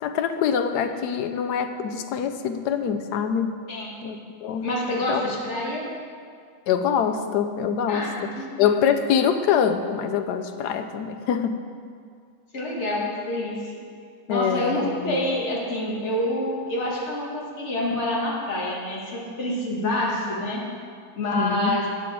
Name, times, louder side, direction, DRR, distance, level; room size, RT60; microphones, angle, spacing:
voice 1, 0.0-3.6 4.0-4.7 5.1-5.2 6.7-8.3 8.6-11.6 14.3-15.2 19.8-20.0 21.3-21.8, left 7 dB, 85° left, 8 dB, 1.2 m, -24 dB
voice 2, 4.6-5.9 7.9-8.5 12.5-13.7 14.3-20.6 21.2-21.9, left 1 dB, 45° left, -3 dB, 1.7 m, -27 dB
8.5 x 7.0 x 4.7 m, 2.2 s
omnidirectional pair, 1.7 m